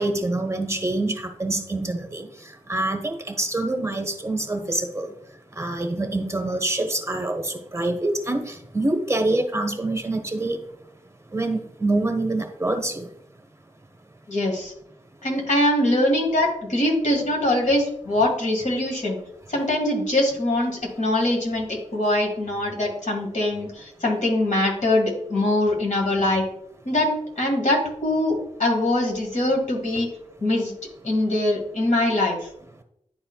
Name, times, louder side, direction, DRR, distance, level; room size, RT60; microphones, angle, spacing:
voice 1, 0.0-2.3 2.7-5.1 5.6-10.6 11.3-13.1, right 2 dB, 20° right, 4 dB, 0.9 m, -26 dB
voice 2, 14.3-14.7 15.2-19.2 19.5-26.4 26.9-30.1 30.4-30.7 31.0-32.5, left 1 dB, 70° left, 0 dB, 1.8 m, -23 dB
10.5 x 4.4 x 2.3 m, 0.75 s
wide cardioid pair, 75°, 13 cm